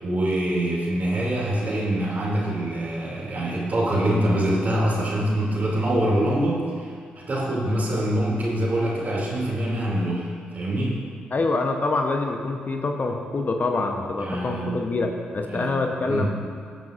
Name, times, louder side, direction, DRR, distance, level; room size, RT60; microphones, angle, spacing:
voice 1, 0.0-10.3 10.5-11.0 14.2-14.8 15.5-15.8 16.1-16.3, right 1 dB, 40° right, -3 dB, 2.6 m, -24 dB
voice 2, 11.3-16.3, left 3 dB, 40° left, 4 dB, 0.9 m, -25 dB
14.0 x 8.7 x 2.6 m, 2.2 s
hypercardioid pair, 40°, 4 cm